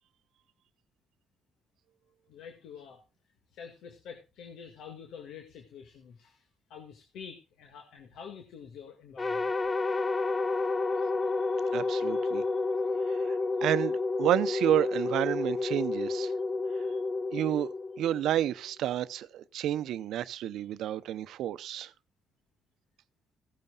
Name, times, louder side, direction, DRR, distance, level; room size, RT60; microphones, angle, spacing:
voice 1, 2.3-3.0 3.5-9.5 10.5-10.7, left 7 dB, 85° left, 1.9 m, -47 dB
sound 1, 9.2-18.5, left 3 dB, 25° left, 1.2 m, -30 dB
voice 2, 11.7-12.4 13.1-16.3 17.3-17.7 18.0-21.9, right 11 dB, 80° right, 0.7 m, -30 dB
16.0 x 12.5 x 2.4 m
cardioid pair, 90°, 0 cm